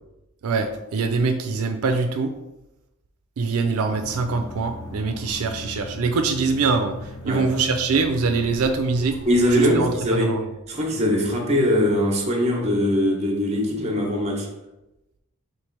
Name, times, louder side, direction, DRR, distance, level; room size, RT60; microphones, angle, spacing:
voice 1, 0.4-2.3 3.4-9.2 9.5-10.5, right 4 dB, 85° right, 5 dB, 0.4 m, -23 dB
sound 1, 3.9-10.0, left 1 dB, 75° left, 0.5 m, -38 dB
voice 2, 9.2-10.4 10.7-14.5, equal, 30° right, 0 dB, 0.9 m, -21 dB
3.2 x 3.1 x 4.5 m, 0.95 s
head